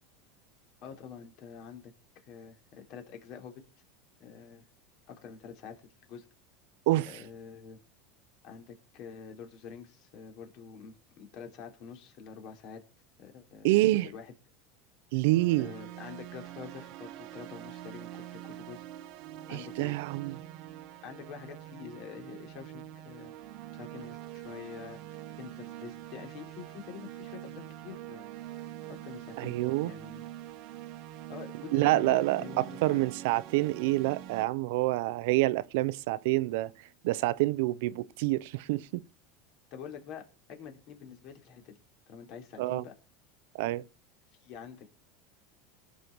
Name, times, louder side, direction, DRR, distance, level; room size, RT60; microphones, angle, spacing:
voice 1, 0.8-3.6 4.2-4.6 5.1-5.8 6.1-6.2 7.1-7.8 8.4-12.8 13.2-14.3 15.6-18.8 19.5-20.0 21.0-23.3 23.7-30.2 31.3-33.0 39.7-40.2 40.5-41.8 42.1-42.9 44.4-44.9, left 7 dB, 50° left, 3.4 m, -46 dB
voice 2, 13.6-14.1 15.1-15.7 19.5-20.4 29.4-29.9 31.7-36.7 37.0-39.0 42.6-42.8 43.5-43.8, right 18 dB, 70° right, 0.6 m, -27 dB
sound 1, 15.2-34.5, right 13 dB, 55° right, 1.0 m, -45 dB
18.5 x 6.4 x 4.6 m
supercardioid pair, 145°, 0 cm